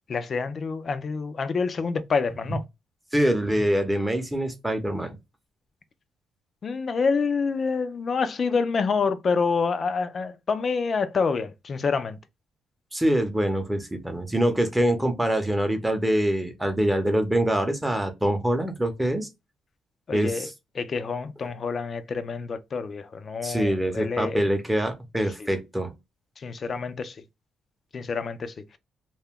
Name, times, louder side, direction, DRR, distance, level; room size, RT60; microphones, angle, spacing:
voice 1, 0.1-2.6 6.6-12.2 20.1-20.5 20.8-24.5 25.4-25.5 26.4-27.1 27.9-28.8, left 5 dB, 45° left, 0.4 m, -27 dB
voice 2, 3.1-5.2 12.9-19.3 20.1-20.5 23.4-25.9, right 1 dB, 10° right, 0.7 m, -24 dB
2.3 x 2.1 x 3.5 m
cardioid pair, 90°, 0 cm